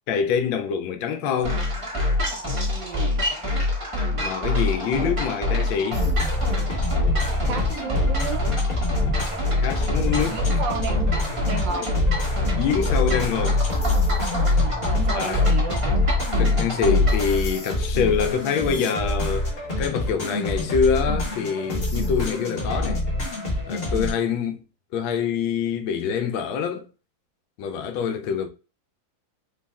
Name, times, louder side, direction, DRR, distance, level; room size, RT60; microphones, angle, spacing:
voice 1, 0.1-1.6 4.1-6.0 9.6-10.4 12.6-13.6 15.1-15.4 16.4-19.5 19.8-23.0 23.7-24.6 24.9-26.9 27.6-28.5, left 7 dB, 80° left, 1.3 m, -25 dB
sound 1, 1.4-17.3, left 2 dB, 30° right, 0.6 m, -24 dB
voice 2, 2.7-3.1 7.4-8.5 10.2-11.2 11.4-11.9 14.4-15.8, right 6 dB, 75° right, 1.1 m, -32 dB
sound 2, 5.9-24.1, left 1 dB, 35° left, 1.1 m, -27 dB
4.1 x 2.1 x 3.4 m
omnidirectional pair, 2.3 m